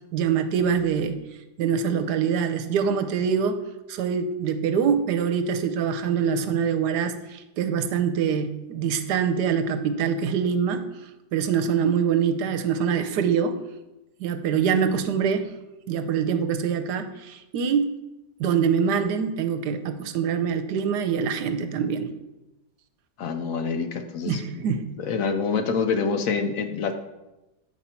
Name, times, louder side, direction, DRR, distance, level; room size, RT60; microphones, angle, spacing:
voice 1, 0.1-1.2 1.6-3.6 3.9-10.9 11.3-13.6 14.2-15.5 15.9-17.9 18.4-22.1 24.3-24.9, right 7 dB, 85° right, 8 dB, 1.2 m, -24 dB
voice 2, 23.2-24.6 25.0-26.9, left 5 dB, 65° left, 8 dB, 0.9 m, -26 dB
8.2 x 5.4 x 4.3 m, 0.99 s
omnidirectional pair, 1.8 m